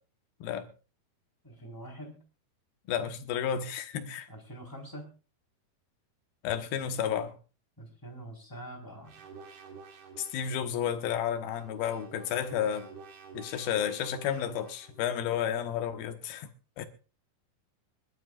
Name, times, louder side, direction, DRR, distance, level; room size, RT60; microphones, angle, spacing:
voice 1, 1.4-2.2 4.3-5.1 7.8-9.2, right 1 dB, 5° left, 3.9 m, -45 dB
voice 2, 2.9-4.3 6.4-7.3 10.2-12.9 13.3-16.5 16.8-16.9, left 9 dB, 70° left, 2.9 m, -32 dB
sound 1, 9.1-10.7 11.4-15.1, right 5 dB, 80° right, 4.5 m, -50 dB
25.5 x 12.0 x 2.5 m
omnidirectional pair, 4.5 m